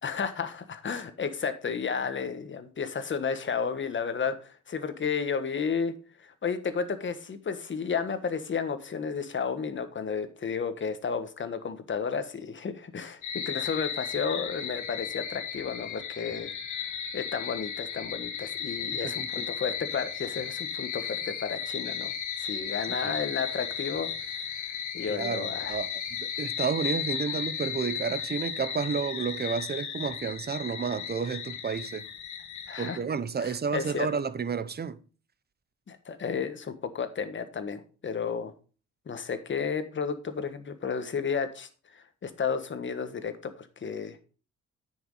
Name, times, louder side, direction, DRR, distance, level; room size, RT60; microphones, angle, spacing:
voice 1, 0.0-5.9 6.2-13.2 13.4-16.5 17.1-22.1 22.4-24.4 24.7-25.8 27.3-27.4 32.7-33.0 33.4-34.1 35.9-38.5 39.1-44.2, left 6 dB, 40° left, 1.5 m, -32 dB
sound 1, 13.2-33.0, left 8 dB, 75° left, 1.9 m, -35 dB
voice 2, 25.1-32.1 32.8-35.0, right 6 dB, 35° right, 0.9 m, -31 dB
9.4 x 6.3 x 4.8 m
cardioid pair, 90°, 30 cm